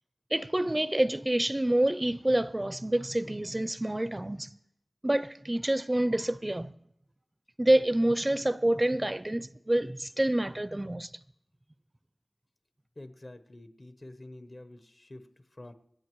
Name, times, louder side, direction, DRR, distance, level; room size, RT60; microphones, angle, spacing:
voice 1, 0.3-4.5 5.0-6.7 7.6-11.1, right 1 dB, 25° right, 0.4 m, -27 dB
voice 2, 13.0-15.7, left 1 dB, 50° left, 0.9 m, -48 dB
26.0 x 8.8 x 3.1 m
wide cardioid pair, 45°, 0 cm